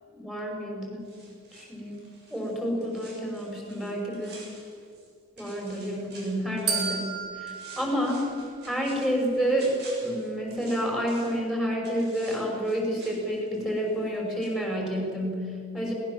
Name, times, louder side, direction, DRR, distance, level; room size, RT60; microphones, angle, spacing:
voice 1, 0.1-1.1 1.5-4.5 5.4-8.2 8.7-15.9, equal, ahead, -1 dB, 5.9 m, -29 dB
sound 1, 1.0-5.1 5.4-7.1 7.5-11.5 11.8-14.2 14.4-14.5, right 3 dB, 50° right, 7.0 m, -50 dB
sound 2, 6.7-8.9, right 6 dB, 85° right, 4.9 m, -33 dB
21.0 x 19.5 x 7.5 m, 2.4 s
head